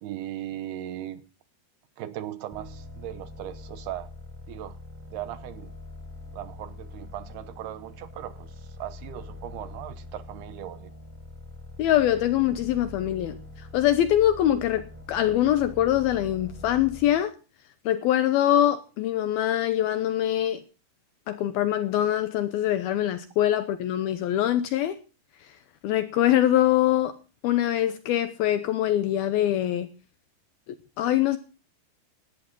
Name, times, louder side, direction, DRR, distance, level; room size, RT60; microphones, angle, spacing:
voice 1, 0.0-1.2 2.0-4.1 4.5-4.8 5.1-5.7 6.3-10.9, right 13 dB, 75° right, 2.6 m, -38 dB
sound 1, 2.5-17.2, left 2 dB, 5° right, 3.5 m, -44 dB
voice 2, 11.8-17.3 17.9-20.6 21.3-25.0 25.4-25.5 25.8-27.2 27.4-29.9 30.7-31.4, left 12 dB, 75° left, 2.3 m, -24 dB
17.5 x 13.5 x 3.8 m
omnidirectional pair, 5.1 m